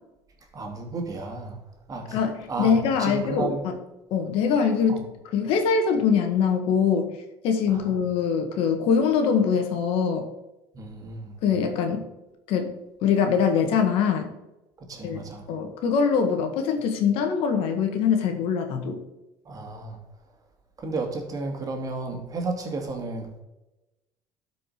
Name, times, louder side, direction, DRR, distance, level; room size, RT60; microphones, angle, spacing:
voice 1, 0.5-1.6 1.9-2.2 2.5-3.6 4.9-5.0 7.7-7.9 10.7-11.4 14.8-15.5 19.4-20.0 20.8-23.3, right 3 dB, 35° right, 3 dB, 2.4 m, -33 dB
voice 2, 2.1-3.7 4.1-5.1 5.3-7.1 7.4-10.2 11.4-12.0 12.5-12.7 13.0-14.3 15.0-15.2 15.5-19.0, left 6 dB, 70° left, 6 dB, 1.6 m, -23 dB
12.5 x 5.1 x 5.0 m, 1.0 s
supercardioid pair, 85°, 10 cm